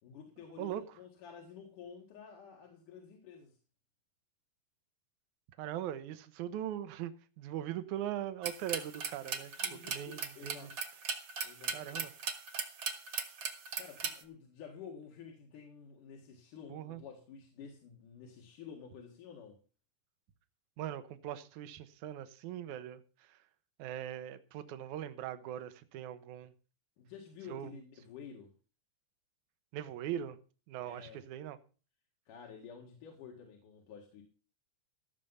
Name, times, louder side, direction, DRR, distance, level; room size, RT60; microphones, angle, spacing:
voice 1, 0.0-3.6 9.6-10.8 11.4-12.0 13.8-19.6 27.0-28.5 30.8-31.2 32.3-34.2, left 7 dB, 80° left, 3.3 m, -51 dB
voice 2, 5.6-9.5 9.8-10.7 11.7-12.1 16.7-17.0 20.8-23.4 23.8-26.5 27.5-27.7 29.7-30.4 30.7-31.6, right 11 dB, 75° right, 2.3 m, -40 dB
sound 1, 8.4-14.2, right 6 dB, 55° right, 2.2 m, -38 dB
16.0 x 6.7 x 5.6 m
omnidirectional pair, 3.7 m